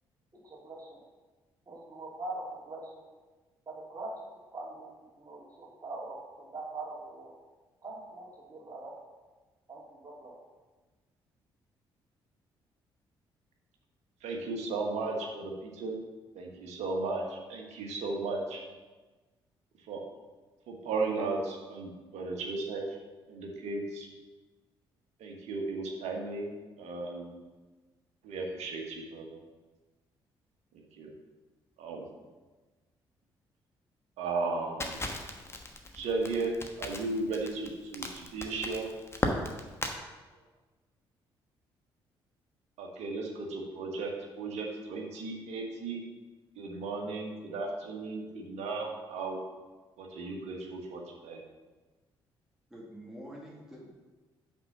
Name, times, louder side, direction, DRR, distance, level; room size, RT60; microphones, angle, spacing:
voice 1, 0.4-1.0 1.7-3.1 3.7-7.3 7.8-8.9 9.7-10.3, right 2 dB, 30° right, -4 dB, 2.9 m, -43 dB
voice 2, 14.2-16.0 16.3-18.6 19.9-20.0 20.7-22.9 23.3-24.1 25.2-27.3 28.2-29.4 30.7-31.1 31.8-32.0 34.2-35.0 35.9-36.5 36.8-38.9 42.8-46.0 46.5-49.4 50.0-51.4, right 3 dB, 60° right, 1 dB, 1.5 m, -35 dB
Crackle, 34.8-39.9, left 2 dB, 20° left, 1.2 m, -36 dB
voice 3, 52.7-53.9, equal, 5° right, -4 dB, 2.1 m, -46 dB
5.9 x 5.7 x 6.7 m, 1.3 s
figure-of-eight pair, 45°, 13 cm